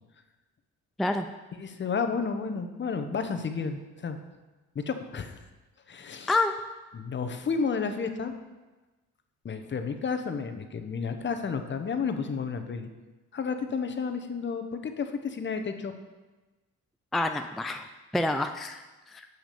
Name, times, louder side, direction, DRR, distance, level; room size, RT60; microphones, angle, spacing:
voice 1, 1.6-4.2 4.7-5.4 5.9-6.3 6.9-8.3 9.4-12.9 13.3-15.9, left 5 dB, 40° left, 8 dB, 0.9 m, -31 dB
voice 2, 17.1-17.9 18.1-19.3, left 2 dB, ahead, 7 dB, 0.4 m, -28 dB
7.4 x 5.9 x 6.8 m, 1.2 s
cardioid pair, 90°, 30 cm